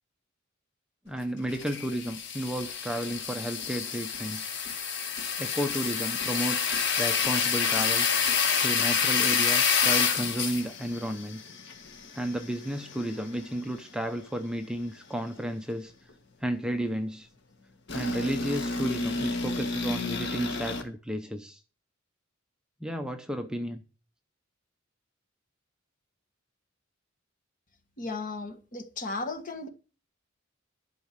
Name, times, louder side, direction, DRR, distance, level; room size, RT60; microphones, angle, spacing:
voice 1, 1.1-4.6 5.4-8.1 8.6-11.4 12.1-15.9 16.4-17.3 17.9-21.6 22.8-23.8, equal, 5° right, 0.7 m, -32 dB
sound 1, 1.5-13.2 13.6-13.7 17.9-20.8, left 6 dB, 60° left, 1.8 m, -28 dB
voice 2, 28.0-29.7, left 3 dB, 40° left, 1.5 m, -35 dB
11.5 x 5.3 x 7.4 m
head